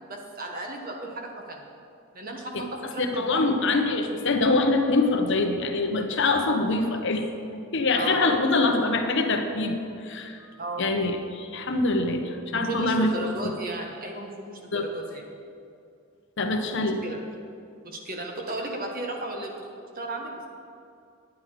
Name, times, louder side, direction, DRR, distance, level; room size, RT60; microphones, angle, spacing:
voice 1, 0.1-1.6 2.1-4.0 7.9-8.7 10.6-10.9 12.5-15.3 16.8-17.2 17.8-19.7 19.9-20.5, right 2 dB, 45° right, 1 dB, 1.4 m, -34 dB
voice 2, 3.0-7.3 7.7-9.8 10.0-10.4 10.8-13.1 13.4-13.5 14.7-14.9 16.4-17.0, left 3 dB, 60° left, 5 dB, 1.0 m, -24 dB
9.7 x 9.4 x 5.0 m, 2.4 s
head